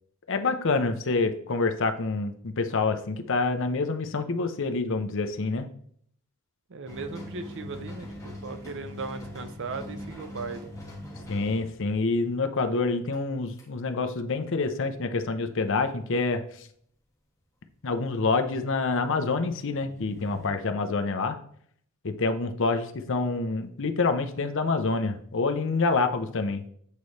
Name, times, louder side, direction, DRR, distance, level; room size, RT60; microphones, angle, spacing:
voice 1, 0.3-5.7 11.3-16.7 17.8-21.4 22.0-26.6, left 3 dB, 60° left, 8 dB, 0.7 m, -27 dB
voice 2, 6.7-10.7, right 4 dB, 55° right, 9 dB, 0.6 m, -37 dB
sound 1, 6.9-12.4 12.6-12.7 13.1-13.2 13.6-13.7 19.5-20.5, left 1 dB, 15° left, 1.6 m, -41 dB
8.3 x 4.1 x 3.2 m, 0.62 s
head